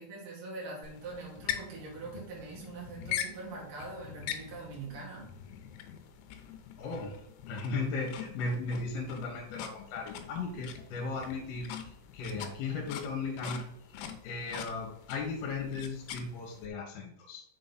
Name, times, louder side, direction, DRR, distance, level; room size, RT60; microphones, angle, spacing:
voice 1, 0.0-5.3, right 3 dB, 50° right, -4 dB, 1.7 m, -43 dB
sound 1, 0.8-16.7, left 10 dB, 85° left, 3.2 m, -43 dB
voice 2, 6.8-13.6 13.9-17.4, left 3 dB, 65° left, 0 dB, 2.8 m, -37 dB
6.2 x 5.7 x 4.1 m, 0.73 s
omnidirectional pair, 5.4 m